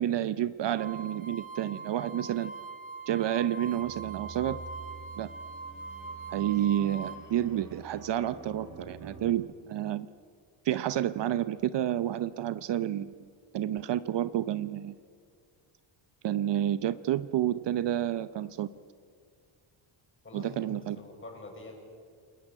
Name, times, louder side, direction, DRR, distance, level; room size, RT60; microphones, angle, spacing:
voice 1, 0.0-2.5 3.1-4.6 5.2-5.3 6.3-10.1 10.6-13.1 13.5-15.0 16.2-18.7 20.3-21.0, right 11 dB, 60° right, 14 dB, 0.8 m, -30 dB
sound 1, 0.8-7.2, right 4 dB, 15° right, 2.5 m, -42 dB
sound 2, 3.7-9.3, right 4 dB, 35° right, 4.7 m, -48 dB
voice 2, 20.2-21.9, left 2 dB, 25° left, 1 dB, 7.2 m, -46 dB
29.0 x 21.5 x 8.8 m, 2.1 s
cardioid pair, 125°, 49 cm